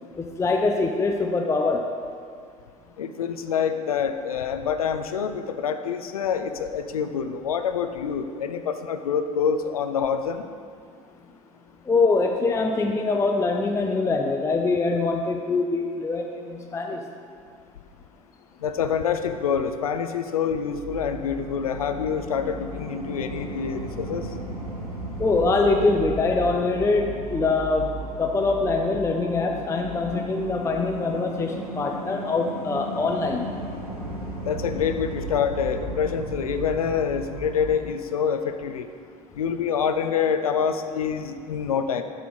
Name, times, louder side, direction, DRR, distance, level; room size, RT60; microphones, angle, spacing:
voice 1, 0.2-1.8 11.9-17.0 25.2-27.9 28.2-33.4, left 3 dB, 15° left, 3 dB, 0.5 m, -23 dB
voice 2, 3.0-10.4 18.6-24.2 34.4-38.9 39.4-42.0, left 7 dB, 80° left, 8 dB, 0.4 m, -26 dB
sound 1, 20.7-37.8, right 1 dB, 85° right, 0.8 m, -35 dB
7.4 x 3.5 x 6.2 m, 2.2 s
figure-of-eight pair, 60°, 19 cm